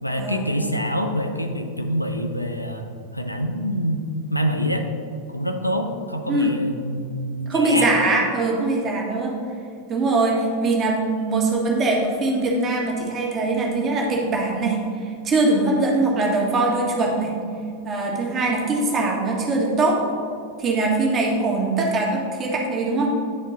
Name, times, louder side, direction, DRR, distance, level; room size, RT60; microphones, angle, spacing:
voice 1, 0.0-2.9 3.1-4.9 5.3-7.9, equal, 90° left, 5 dB, 0.6 m, -26 dB
voice 2, 7.5-9.4 9.9-17.3 17.8-20.0 20.6-23.1, right 2 dB, 25° right, -1 dB, 1.5 m, -22 dB
9.6 x 4.4 x 4.0 m, 2.3 s
figure-of-eight pair, 90°, 0 cm